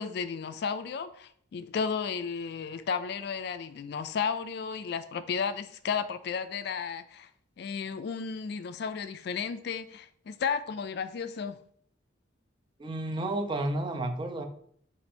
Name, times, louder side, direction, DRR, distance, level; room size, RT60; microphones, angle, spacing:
voice 1, 0.0-7.3 7.6-11.6, left 6 dB, 55° left, 12 dB, 0.3 m, -33 dB
voice 2, 12.8-14.4, right 1 dB, 25° right, 5 dB, 0.4 m, -31 dB
4.3 x 2.5 x 4.1 m, 0.63 s
head